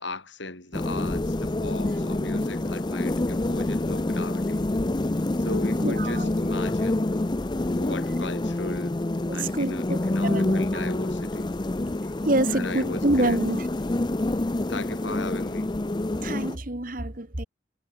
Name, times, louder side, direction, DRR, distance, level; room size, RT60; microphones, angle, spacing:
voice 1, 0.0-4.7 5.4-7.2 7.7-8.9 9.3-11.5 12.5-13.4 14.7-15.7, left 2 dB, 70° left, 7.1 m, -37 dB
sound 1, 0.7-16.6, left 2 dB, 20° left, 0.5 m, -27 dB
voice 2, 5.8-6.3 9.3-10.9 12.2-13.7 16.2-17.4, right 1 dB, 45° right, 1.9 m, -27 dB
head